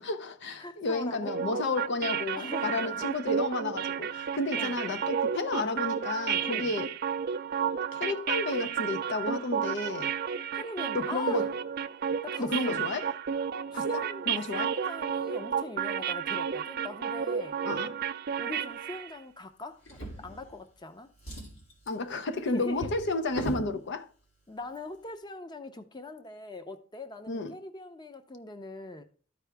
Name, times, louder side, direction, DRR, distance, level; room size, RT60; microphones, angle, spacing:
voice 1, 0.0-7.0 7.9-10.1 10.9-11.6 12.4-13.1 13.7-14.7 17.6-17.9 21.9-24.1 27.3-27.5, left 2 dB, 60° left, 0.6 m, -32 dB
voice 2, 0.6-1.3 2.4-3.0 4.6-4.8 6.4-6.7 10.5-11.5 12.2-12.8 13.7-14.3 14.5-17.6 18.4-21.1 22.5-22.9 24.5-29.0, left 2 dB, 20° left, 0.7 m, -42 dB
sound 1, 1.3-19.1, right 7 dB, 50° right, 0.4 m, -32 dB
Drawer open or close, 19.8-20.8 21.1-23.7 24.6-24.8 25.1-25.2, right 1 dB, 75° left, 3.1 m, -40 dB
13.0 x 4.7 x 3.4 m
head